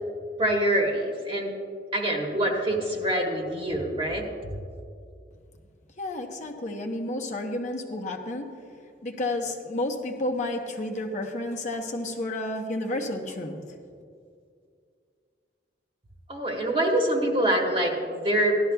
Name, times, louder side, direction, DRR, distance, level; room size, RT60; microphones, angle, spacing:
voice 1, 0.4-1.5 1.9-4.2 16.3-18.6, right 1 dB, 30° right, -1 dB, 1.3 m, -25 dB
voice 2, 6.0-8.5 9.0-13.6, left 1 dB, 45° left, 2 dB, 0.9 m, -31 dB
17.0 x 12.0 x 2.3 m, 2.3 s
head